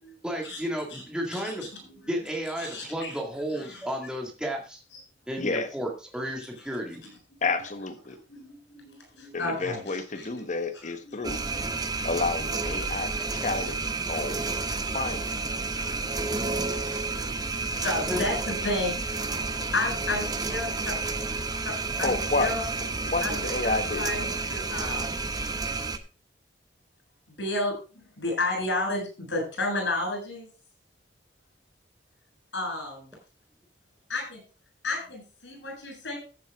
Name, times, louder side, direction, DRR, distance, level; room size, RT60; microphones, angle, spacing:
voice 1, 0.2-1.7 2.1-4.8 5.3-7.0 18.1-18.3, equal, 5° right, 0 dB, 2.1 m, -32 dB
voice 2, 2.6-3.1 3.7-3.8 8.1-10.3 10.7-10.9 11.3-11.6 12.0-12.1 14.3-14.5 15.9-19.3 19.7-20.9 21.6-21.7 22.0-22.6 23.2-25.1 27.3-30.5 32.5-33.1 34.1-34.4 34.8-36.2, left 2 dB, 75° left, 2 dB, 7.8 m, -32 dB
voice 3, 7.4-8.2 9.3-11.4 12.0-13.1 13.4-14.5 14.9-15.3 22.0-22.5 23.1-24.1, left 3 dB, 45° left, 7 dB, 1.4 m, -30 dB
sound 1, 11.2-26.0, right 3 dB, 20° right, 0.9 m, -30 dB
14.5 x 7.7 x 3.7 m, 0.34 s
head